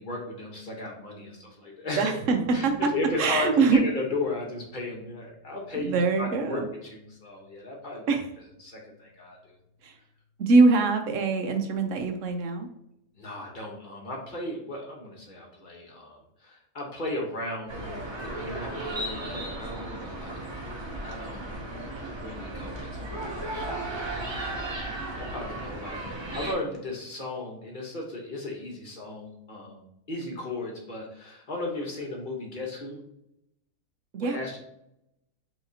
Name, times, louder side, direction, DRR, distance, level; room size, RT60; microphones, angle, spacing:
voice 1, 0.0-2.1 2.5-8.1 8.6-9.6 13.2-20.4 21.0-21.5 22.1-24.8 25.2-26.0 26.3-33.0 34.2-34.6, left 2 dB, 35° left, -1 dB, 1.1 m, -36 dB
voice 2, 2.0-2.8 3.2-3.8 5.7-6.7 8.1-8.2 9.8-10.0 10.4-12.7 34.1-34.4, right 4 dB, 65° right, 5 dB, 0.9 m, -23 dB
sound 1, 2.2-11.3 12.7-13.3, equal, 90° right, 1.2 m, -51 dB
sound 2, 17.7-26.5, right 1 dB, 35° right, 0.4 m, -35 dB
5.8 x 2.9 x 2.8 m, 0.78 s
omnidirectional pair, 1.6 m